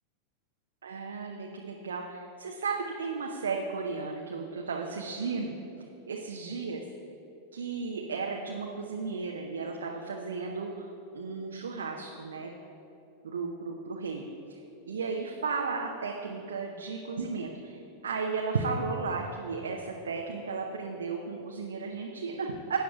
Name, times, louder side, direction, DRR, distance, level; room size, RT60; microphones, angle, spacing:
voice 1, 0.8-5.5 6.1-6.8 7.5-12.5 13.2-14.6 14.9-22.8, right 4 dB, 65° right, 0 dB, 0.7 m, -34 dB
19.0 x 9.4 x 2.4 m, 3.0 s
figure-of-eight pair, 90°, 0 cm